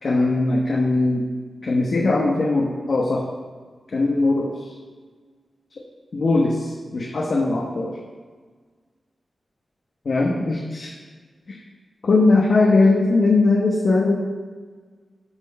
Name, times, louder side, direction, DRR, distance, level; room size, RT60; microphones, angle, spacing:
voice 1, 0.0-1.2 1.6-3.2 3.9-4.7 6.1-7.9 10.0-10.9 11.5-11.6 12.0-14.2, left 3 dB, 55° left, -2 dB, 1.0 m, -20 dB
12.5 x 4.5 x 5.3 m, 1.5 s
wide cardioid pair, 165°, 0 cm